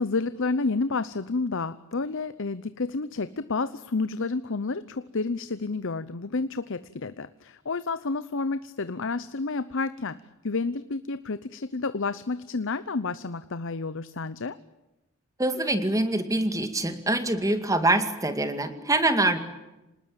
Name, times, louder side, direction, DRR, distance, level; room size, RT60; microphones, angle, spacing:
voice 1, 0.0-10.2 10.4-14.6, left 3 dB, 60° left, 13 dB, 0.8 m, -30 dB
voice 2, 15.4-19.4, right 2 dB, 15° right, 9 dB, 2.2 m, -24 dB
26.5 x 20.0 x 8.9 m, 0.99 s
head